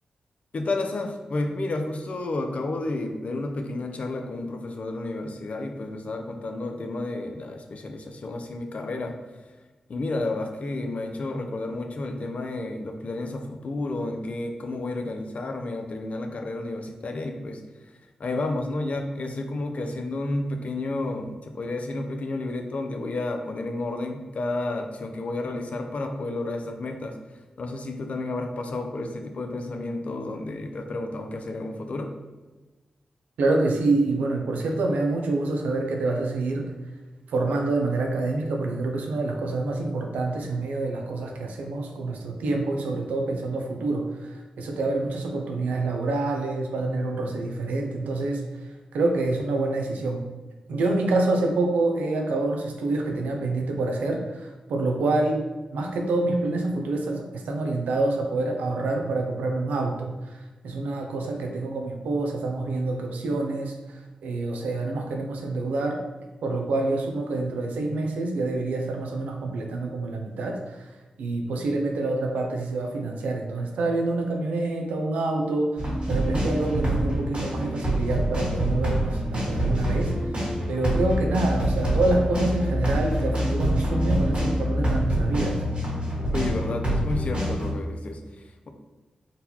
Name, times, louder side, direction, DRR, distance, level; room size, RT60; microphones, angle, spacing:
voice 1, 0.5-9.5 9.9-27.2 27.6-32.1 86.3-88.7, left 2 dB, 60° left, 5 dB, 0.5 m, -31 dB
voice 2, 33.4-36.7 37.3-48.4 48.9-50.2 50.7-55.4 55.7-60.4 60.6-66.0 66.4-70.9 71.2-80.1 80.7-85.6, right 2 dB, 90° right, 2 dB, 0.4 m, -27 dB
sound 1, 75.8-87.7, equal, 50° right, 1.5 m, -26 dB
3.8 x 2.2 x 2.8 m, 1.2 s
cardioid pair, 45°, 3 cm